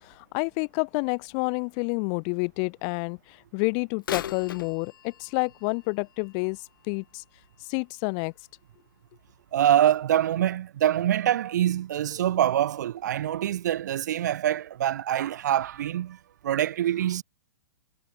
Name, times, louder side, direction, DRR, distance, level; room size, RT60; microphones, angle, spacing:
voice 1, 0.0-7.2 7.6-8.3, left 40 dB or more, 20° left, 0.6 m, -29 dB
Bird vocalization bird call bird song / Telephone, 4.0-7.8 8.4-8.5 9.3-9.4 10.0-10.1, left 10 dB, 55° left, 3.0 m, -40 dB
voice 2, 9.5-16.2 16.4-17.2, right 11 dB, 45° right, 0.4 m, -25 dB
hypercardioid pair, 170°, 13 cm